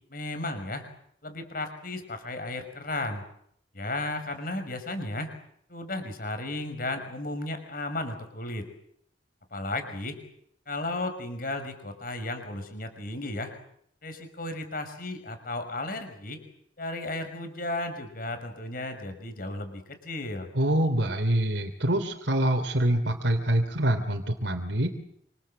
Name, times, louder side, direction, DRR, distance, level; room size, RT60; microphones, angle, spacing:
voice 1, 0.1-0.8 1.2-3.2 3.7-5.3 5.7-8.7 9.5-10.2 10.7-13.5 14.0-16.4 16.8-20.5, left 2 dB, 50° left, 7 dB, 5.9 m, -34 dB
voice 2, 20.5-24.9, right 1 dB, 85° right, 3 dB, 3.1 m, -25 dB
28.0 x 26.0 x 7.9 m, 0.71 s
head